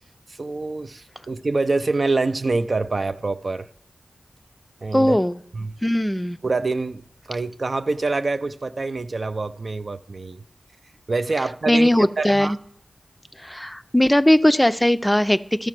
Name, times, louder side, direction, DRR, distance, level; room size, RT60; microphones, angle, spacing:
voice 1, 0.3-3.7 4.8-5.2 5.5-5.8 6.4-10.4 11.1-11.9 12.2-12.5, right 3 dB, 60° right, 0.4 m, -25 dB
voice 2, 4.9-5.4 5.8-6.4 11.7-12.6 13.4-15.7, left 1 dB, 10° left, 0.4 m, -19 dB
13.5 x 4.8 x 6.0 m
wide cardioid pair, 60°, 0 cm